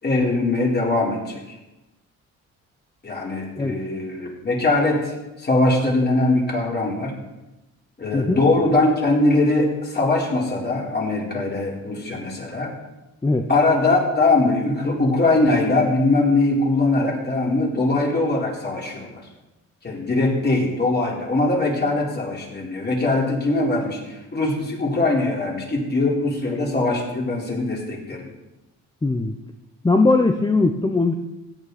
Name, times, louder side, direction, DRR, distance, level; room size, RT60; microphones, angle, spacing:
voice 1, 0.0-1.4 3.0-7.1 8.0-12.7 13.5-19.3 19.8-28.3, left 2 dB, 35° left, -3 dB, 4.2 m, -21 dB
voice 2, 29.0-29.3 29.8-31.1, left 3 dB, 15° left, 5 dB, 0.8 m, -19 dB
16.0 x 8.8 x 4.2 m, 1.0 s
cardioid pair, 90°, 30 cm